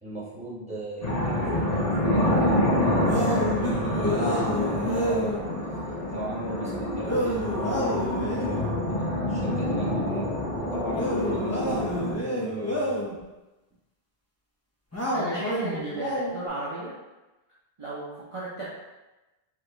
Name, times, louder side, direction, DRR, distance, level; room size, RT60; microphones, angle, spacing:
voice 1, 0.0-13.0, equal, 5° right, -8 dB, 1.1 m, -37 dB
sound 1, 1.0-12.1, left 1 dB, 45° left, 0.9 m, -27 dB
sound 2, 3.1-5.4 7.0-8.7 10.9-13.2 14.9-16.5, equal, 15° left, 0.7 m, -29 dB
voice 2, 15.1-16.9 17.8-18.6, right 2 dB, 35° right, -9 dB, 0.8 m, -34 dB
4.6 x 3.0 x 3.3 m, 1.1 s
omnidirectional pair, 1.0 m